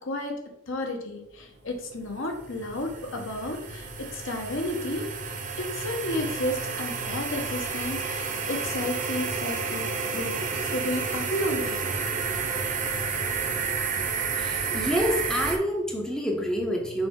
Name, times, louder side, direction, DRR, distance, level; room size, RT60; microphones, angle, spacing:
voice 1, 0.0-0.3 0.7-5.0 5.6-11.8, left 1 dB, 70° left, 3 dB, 1.1 m, -32 dB
sound 1, 1.7-15.6, right 5 dB, 40° right, 0.7 m, -31 dB
voice 2, 14.4-17.1, equal, 5° left, 1 dB, 0.6 m, -27 dB
6.0 x 4.4 x 3.7 m, 0.81 s
head